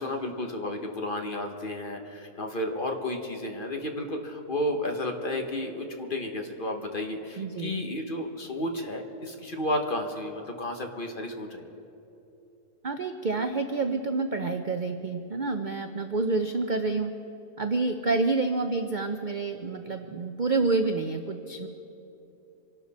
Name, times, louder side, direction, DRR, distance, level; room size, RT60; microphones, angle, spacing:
voice 1, 0.0-11.7, left 1 dB, 35° left, 4 dB, 1.3 m, -32 dB
voice 2, 7.4-7.8 12.8-17.1 17.6-21.7, right 3 dB, 55° right, 6 dB, 0.5 m, -28 dB
26.0 x 12.0 x 4.2 m, 2.9 s
omnidirectional pair, 1.6 m